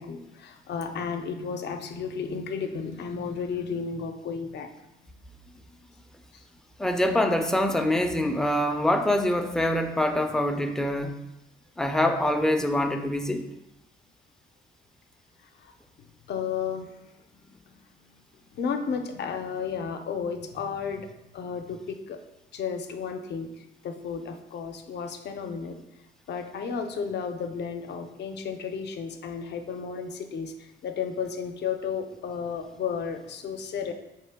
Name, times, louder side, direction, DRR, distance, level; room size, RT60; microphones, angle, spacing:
voice 1, 0.0-4.7 6.3-6.4 15.6-15.7 16.3-17.8 18.5-22.2 22.5-25.8 26.3-33.9, left 6 dB, 60° left, 6 dB, 0.5 m, -33 dB
voice 2, 6.8-11.1 11.8-13.4, left 1 dB, 5° left, 6 dB, 0.4 m, -25 dB
3.8 x 3.1 x 3.5 m, 0.91 s
cardioid pair, 90°, 20 cm